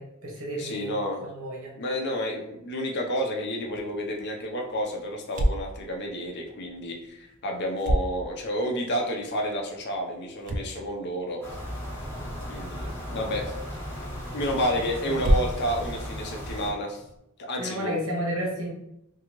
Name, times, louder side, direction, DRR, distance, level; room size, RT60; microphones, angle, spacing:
voice 1, 0.0-0.9 1.2-1.7 13.1-13.4 14.8-15.3 17.6-18.7, equal, 70° right, -2 dB, 1.0 m, -33 dB
voice 2, 0.6-1.2 1.8-11.4 12.4-13.5 14.3-17.0 17.4-17.9, equal, 50° left, 1 dB, 0.6 m, -30 dB
sound 1, 3.6-17.2, right 1 dB, 35° right, 0.3 m, -34 dB
sound 2, 11.4-16.7, equal, 10° left, 0.7 m, -36 dB
2.7 x 2.5 x 2.9 m, 0.81 s
head